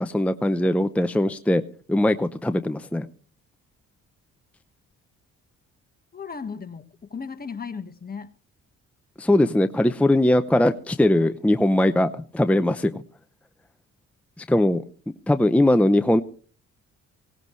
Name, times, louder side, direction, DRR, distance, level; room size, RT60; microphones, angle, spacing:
voice 1, 0.0-1.6 1.9-3.1 9.2-13.0 14.4-14.8 15.3-16.2, left 1 dB, 5° left, 0.7 m, -20 dB
voice 2, 6.1-8.3, left 5 dB, 30° left, 1.6 m, -36 dB
18.5 x 17.5 x 3.2 m
cardioid pair, 90°, 30 cm